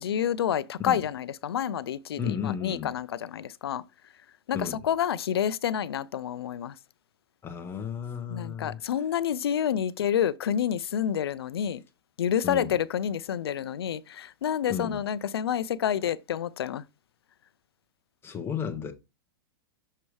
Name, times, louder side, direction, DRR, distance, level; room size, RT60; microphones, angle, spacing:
voice 1, 0.0-3.8 4.5-6.7 8.3-11.8 12.2-16.8, left 9 dB, 90° left, 0.5 m, -28 dB
voice 2, 2.2-2.9 4.5-4.8 7.4-8.8 12.4-12.7 14.7-15.0 18.2-18.9, left 7 dB, 20° left, 1.2 m, -33 dB
6.7 x 3.0 x 4.7 m
hypercardioid pair, 130°, 13 cm